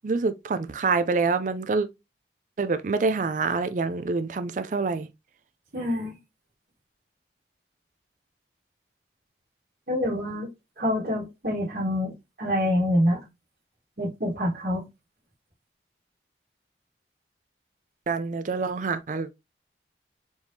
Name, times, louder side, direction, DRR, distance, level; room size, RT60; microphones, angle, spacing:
voice 1, 0.0-1.9 2.6-5.1 18.1-19.3, right 4 dB, 45° right, 0.4 m, -26 dB
voice 2, 5.7-6.1 9.9-10.5 10.8-12.1 12.4-13.2 14.0-14.8, left 1 dB, 60° right, 1.6 m, -26 dB
4.5 x 3.5 x 2.7 m
head